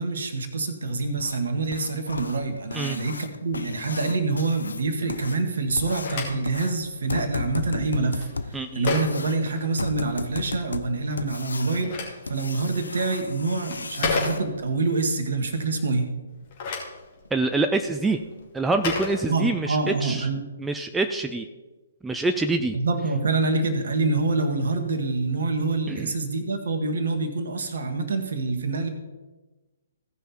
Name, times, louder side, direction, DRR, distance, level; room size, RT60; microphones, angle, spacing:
voice 1, 0.0-16.1 19.2-20.4 22.7-28.9, right 3 dB, 60° right, 6 dB, 1.5 m, -26 dB
sound 1, 1.2-14.4 16.7-16.8 17.2-17.3 17.8-17.9 18.4-18.5 18.9-19.1 19.5-19.6 20.0-20.1, left 3 dB, 70° left, 0.6 m, -35 dB
Telephone, 5.7-10.2 11.4-14.9 16.3-19.9, left 4 dB, 40° left, 2.5 m, -34 dB
voice 2, 8.5-8.8 17.3-18.2 18.5-20.3 20.6-21.5 22.0-22.8 25.9-26.1, right 3 dB, 5° right, 6 dB, 0.5 m, -25 dB
16.5 x 5.6 x 4.3 m, 1.2 s
figure-of-eight pair, 130°, 0 cm